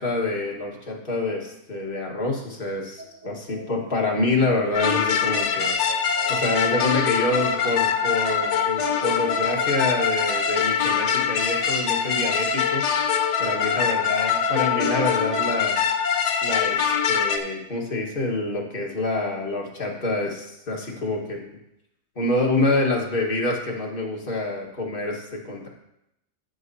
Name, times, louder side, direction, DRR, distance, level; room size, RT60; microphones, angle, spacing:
voice 1, 0.0-5.8 6.3-12.9 13.4-15.8 16.4-21.5 22.1-25.7, left 2 dB, 35° left, -1 dB, 1.6 m, -26 dB
sound 1, 3.0-11.2, right 2 dB, 45° right, 1.9 m, -43 dB
sound 2, 4.7-17.4, left 7 dB, 70° left, 1.4 m, -23 dB
14.5 x 6.5 x 2.7 m, 0.82 s
omnidirectional pair, 1.9 m